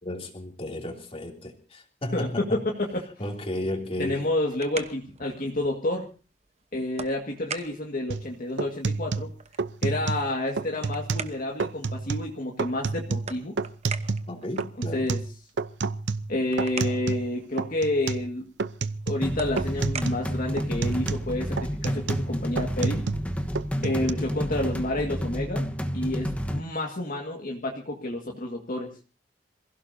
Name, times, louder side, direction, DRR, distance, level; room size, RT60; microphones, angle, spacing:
voice 1, 0.0-2.6 3.2-4.3 14.3-15.1 16.8-17.0 23.8-24.3, left 1 dB, 35° left, 2 dB, 3.1 m, -34 dB
voice 2, 2.1-3.1 4.0-6.1 6.7-9.3 9.8-13.6 14.9-15.2 16.3-18.4 19.1-23.0 23.8-25.7 25.9-28.9, left 1 dB, 50° left, 0 dB, 1.9 m, -29 dB
sound 1, 4.3-21.2, right 5 dB, 40° right, 1.1 m, -44 dB
sound 2, 8.1-8.3 8.6-10.3 10.6-11.3 11.6-12.3 12.6-14.3 14.6-17.3 17.6-18.3 18.6-19.3 19.6-20.3 20.6-23.3 23.6-24.1, right 4 dB, 90° right, 0.7 m, -30 dB
sound 3, 19.2-26.6, equal, 10° left, 1.2 m, -30 dB
27.5 x 16.0 x 2.8 m, 0.34 s
head